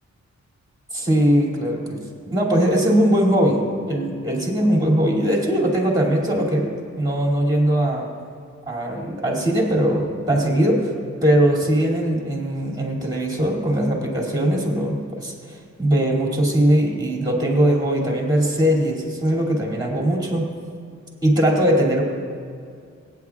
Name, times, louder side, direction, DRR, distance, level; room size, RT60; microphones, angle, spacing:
voice 1, 0.9-6.7 7.0-8.1 8.7-10.9 11.2-20.5 21.2-22.0, right 1 dB, 15° right, -1 dB, 2.6 m, -20 dB
24.0 x 9.3 x 2.4 m, 2.2 s
wide cardioid pair, 125°, 29 cm